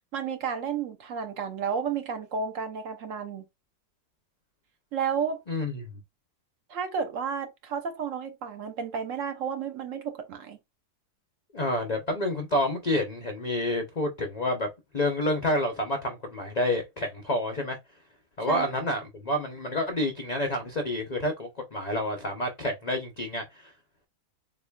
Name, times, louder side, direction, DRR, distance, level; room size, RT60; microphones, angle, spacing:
voice 1, 0.1-3.4 4.9-5.4 6.7-10.6 18.4-18.7, right 6 dB, 65° right, 0.9 m, -32 dB
voice 2, 5.5-5.9 11.5-14.7 14.9-17.8 18.4-23.7, left 1 dB, 60° left, 0.4 m, -29 dB
3.9 x 2.9 x 2.2 m
omnidirectional pair, 1.7 m